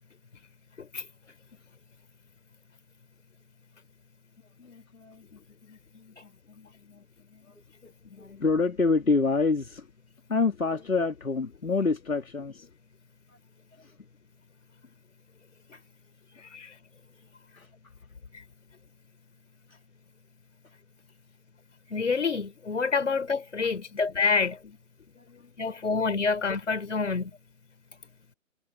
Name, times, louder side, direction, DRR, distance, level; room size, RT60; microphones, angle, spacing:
voice 1, 4.6-7.0 7.3-7.4 7.8-9.9 10.3-12.7 13.3-13.4 13.8-13.9 17.5-17.7 25.2-25.5 25.8-25.9, left 4 dB, 80° left, 3.2 m, -29 dB
voice 2, 21.9-24.6 25.6-27.3, left 4 dB, 60° left, 5.0 m, -27 dB
figure-of-eight pair, 155°, 41 cm